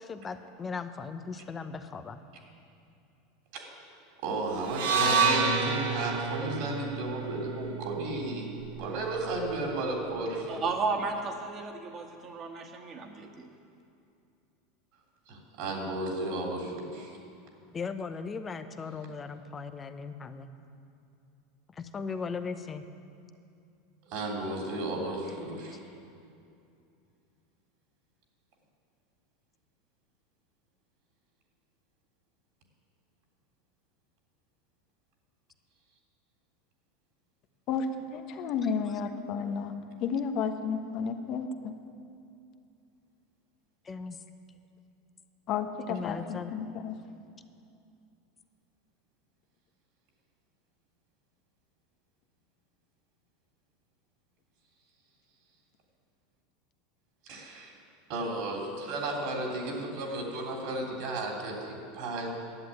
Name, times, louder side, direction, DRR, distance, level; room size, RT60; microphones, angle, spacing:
voice 1, 0.0-2.2 17.7-20.5 21.7-22.8 38.6-39.0 43.8-44.2 45.9-46.5, left 5 dB, 25° left, 9 dB, 0.8 m, -38 dB
voice 2, 4.2-10.6 15.3-17.2 24.1-25.8 57.2-57.8 58.1-62.3, right 2 dB, 65° right, 0 dB, 3.2 m, -34 dB
sound 1, 4.7-8.9, right 5 dB, 80° right, 1.3 m, -29 dB
voice 3, 10.5-13.5, right 4 dB, 35° right, 3 dB, 1.7 m, -34 dB
voice 4, 38.1-39.7 40.0-41.7 45.5-46.9, left 6 dB, 50° left, 7 dB, 1.1 m, -32 dB
11.0 x 7.9 x 9.2 m, 2.6 s
supercardioid pair, 115°, 0 cm